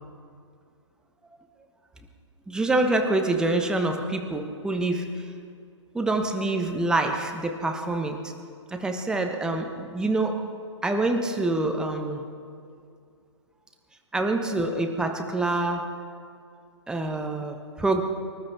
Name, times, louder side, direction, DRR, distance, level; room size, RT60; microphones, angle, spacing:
voice 1, 2.5-5.3 5.9-8.3 8.7-10.4 10.8-12.3 14.1-15.9 16.9-18.0, right 2 dB, 5° right, 4 dB, 1.2 m, -26 dB
25.5 x 12.5 x 3.6 m, 2.3 s
figure-of-eight pair, 130°, 15 cm